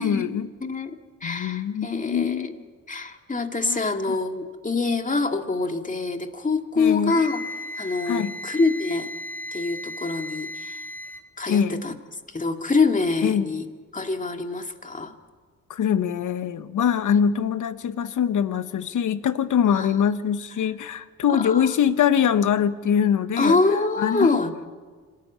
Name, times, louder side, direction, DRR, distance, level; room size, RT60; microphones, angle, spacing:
voice 1, 0.0-0.5 1.2-2.5 3.6-3.8 6.8-7.1 8.1-8.3 11.5-11.8 13.2-13.5 15.7-23.6 24.0-24.3, left 8 dB, 65° left, 13 dB, 1.1 m, -23 dB
voice 2, 0.6-2.6 2.9-7.4 7.8-9.1 9.5-10.8 11.4-11.9 12.3-13.6 13.9-15.1 19.7-19.9 21.3-21.7 23.4-24.5, left 3 dB, 25° left, 5 dB, 2.1 m, -25 dB
Wind instrument woodwind instrument, 7.1-11.3, left 1 dB, 5° left, 2.1 m, -36 dB
26.0 x 12.5 x 8.6 m, 1.5 s
supercardioid pair, 60°, 33 cm